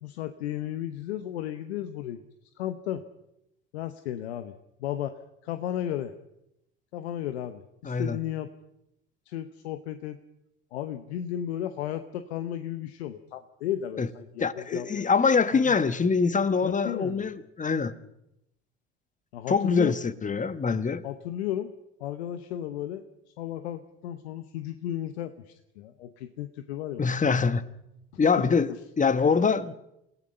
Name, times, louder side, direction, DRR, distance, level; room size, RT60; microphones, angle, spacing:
voice 1, 0.0-2.2 2.6-3.1 3.7-4.5 4.8-5.2 5.4-6.1 6.9-8.5 9.3-10.2 10.7-15.1 15.5-16.0 16.6-17.3 19.3-20.0 21.0-21.7 22.0-23.0 23.4-27.1, left 11 dB, 85° left, 1.1 m, -34 dB
voice 2, 7.8-8.2 14.0-14.1 14.4-17.9 19.5-21.0 27.0-27.6 28.2-28.7 29.0-29.7, left 5 dB, 25° left, 1.3 m, -24 dB
27.5 x 17.0 x 5.6 m
hypercardioid pair, 70°, 31 cm